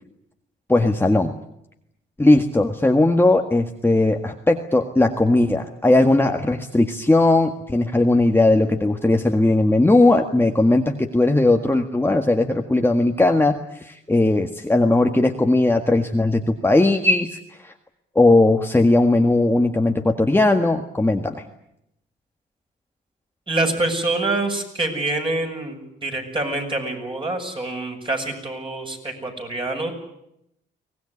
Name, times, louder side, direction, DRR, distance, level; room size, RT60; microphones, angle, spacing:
voice 1, 0.7-1.3 2.2-17.7 18.1-21.4, left 2 dB, 10° left, 3 dB, 1.8 m, -18 dB
voice 2, 23.5-29.9, right 2 dB, 25° right, 3 dB, 7.3 m, -26 dB
24.0 x 19.0 x 9.9 m, 0.79 s
cardioid pair, 90°, 20 cm